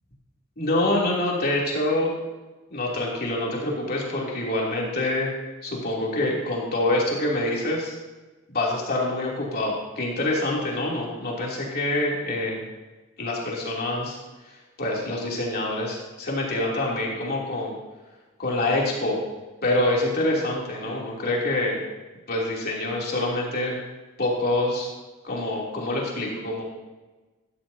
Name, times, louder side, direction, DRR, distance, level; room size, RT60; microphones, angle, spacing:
voice 1, 0.6-2.1 2.7-5.3 5.6-7.9 8.5-12.6 13.2-14.2 14.8-17.7 18.4-19.2 19.6-21.8 22.3-23.8 24.2-24.9 25.2-26.6, left 1 dB, 50° left, -3 dB, 3.1 m, -26 dB
14.5 x 14.0 x 2.8 m, 1.2 s
head